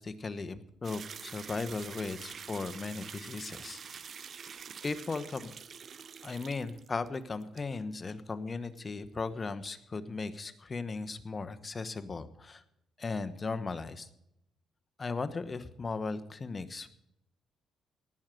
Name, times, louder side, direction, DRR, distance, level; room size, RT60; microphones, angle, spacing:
voice 1, 0.0-3.8 4.5-5.5 6.2-12.6 13.0-14.1 15.0-16.9, left 4 dB, 30° left, 12 dB, 1.1 m, -37 dB
sound 1, 0.8-7.2 7.4-7.6, right 7 dB, 50° right, 0.6 m, -46 dB
18.5 x 6.6 x 7.6 m, 0.81 s
cardioid pair, 90°, 0 cm